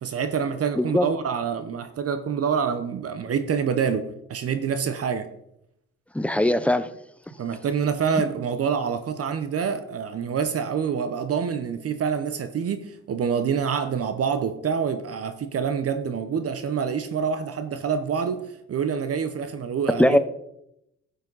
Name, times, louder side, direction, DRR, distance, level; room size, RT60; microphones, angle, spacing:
voice 1, 0.0-5.3 7.4-18.4 18.7-20.2, right 6 dB, 50° right, 9 dB, 0.8 m, -26 dB
voice 2, 0.8-1.1 6.1-6.9 20.0-20.2, left 1 dB, 5° left, 12 dB, 0.6 m, -20 dB
10.5 x 8.2 x 4.0 m, 0.80 s
cardioid pair, 90°, 30 cm